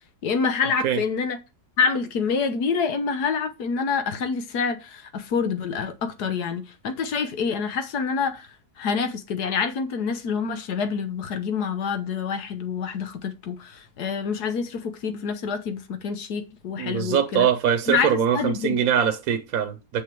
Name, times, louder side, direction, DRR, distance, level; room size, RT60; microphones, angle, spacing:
voice 1, 0.2-1.4 1.8-8.5 8.8-17.5 17.9-18.8, left 5 dB, 90° left, 1.6 m, -27 dB
voice 2, 16.8-20.0, right 8 dB, 65° right, 1.3 m, -23 dB
7.9 x 7.2 x 4.6 m
omnidirectional pair, 1.7 m